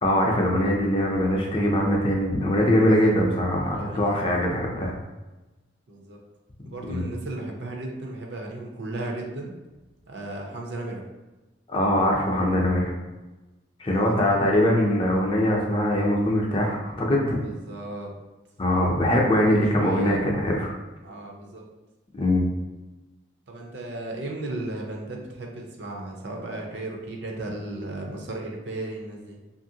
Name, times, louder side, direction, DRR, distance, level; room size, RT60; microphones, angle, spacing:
voice 1, 0.0-4.9 6.9-7.1 11.7-12.9 13.8-17.4 18.6-20.7 22.1-22.5, left 1 dB, 30° left, -1 dB, 0.4 m, -22 dB
voice 2, 2.8-3.1 3.7-4.5 5.9-6.2 6.6-9.5 10.1-11.0 13.9-14.8 17.4-18.1 19.4-20.2 21.0-21.6 23.5-29.4, right 2 dB, 65° right, 0 dB, 0.6 m, -35 dB
2.8 x 2.6 x 2.7 m, 1.1 s
head